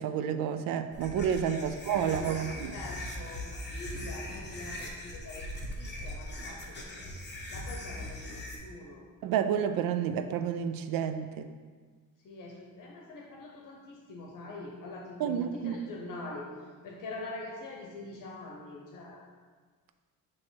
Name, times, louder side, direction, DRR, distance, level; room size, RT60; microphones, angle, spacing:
voice 1, 0.0-2.7 9.2-11.5 15.2-15.7, right 8 dB, 85° right, 9 dB, 0.5 m, -30 dB
sound 1, 0.9-8.6, left 1 dB, 30° left, 1.2 m, -40 dB
voice 2, 1.6-9.0 12.2-16.5 16.8-19.2, left 2 dB, 70° left, -1 dB, 0.9 m, -44 dB
7.2 x 3.1 x 4.5 m, 1.5 s
cardioid pair, 95°, 33 cm